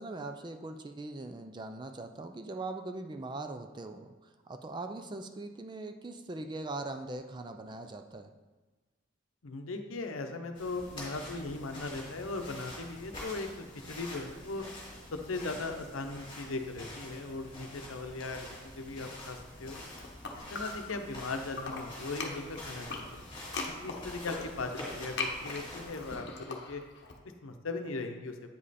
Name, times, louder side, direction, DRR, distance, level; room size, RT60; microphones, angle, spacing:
voice 1, 0.0-8.3 15.4-15.6, right 2 dB, 20° right, 7 dB, 0.3 m, -41 dB
voice 2, 9.4-14.6 15.1-19.8 20.3-23.2 23.8-26.8 27.4-28.3, left 3 dB, 80° left, 6 dB, 0.7 m, -38 dB
sound 1, 10.5-26.1, left 1 dB, 25° left, 2.6 m, -46 dB
sound 2, 19.7-21.2 21.5-27.1, left 3 dB, 55° left, 0.9 m, -40 dB
8.5 x 5.2 x 4.2 m, 1.2 s
head